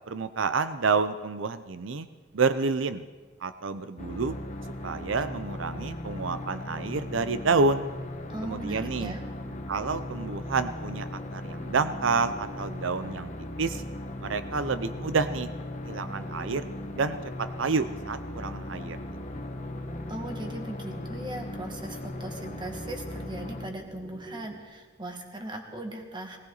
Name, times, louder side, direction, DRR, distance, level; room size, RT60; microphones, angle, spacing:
voice 1, 0.1-2.1 2.3-3.0 3.4-4.4 4.8-7.9 8.4-9.1 9.7-13.3 13.6-13.8 14.2-15.5 15.8-16.6 16.9-19.0, right 4 dB, 80° right, 11 dB, 0.6 m, -28 dB
sound 1, 4.0-23.7, left 1 dB, 40° left, 1.1 m, -38 dB
voice 2, 8.3-9.2 20.1-26.4, right 1 dB, 25° right, 3 dB, 1.9 m, -39 dB
sound 2, 8.7-24.6, equal, 5° left, 1.2 m, -49 dB
19.5 x 18.5 x 4.0 m, 1.3 s
head